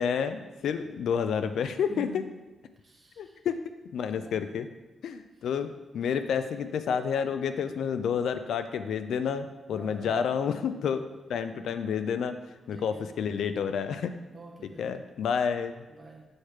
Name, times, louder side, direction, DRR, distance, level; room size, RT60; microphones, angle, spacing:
voice 1, 0.0-2.1 3.2-3.6 3.9-4.7 5.0-11.0 11.3-12.3 12.7-14.1 14.8-15.8, left 7 dB, 75° left, 9 dB, 0.4 m, -29 dB
voice 2, 1.9-2.3 2.8-3.4 4.1-4.6 5.4-5.5 9.7-10.3 11.1-11.2 11.5-11.7 12.7-13.3 14.3-14.9 15.9-16.3, right 2 dB, 30° right, 0 dB, 0.8 m, -47 dB
6.4 x 3.2 x 5.7 m, 1.1 s
wide cardioid pair, 170°, 0 cm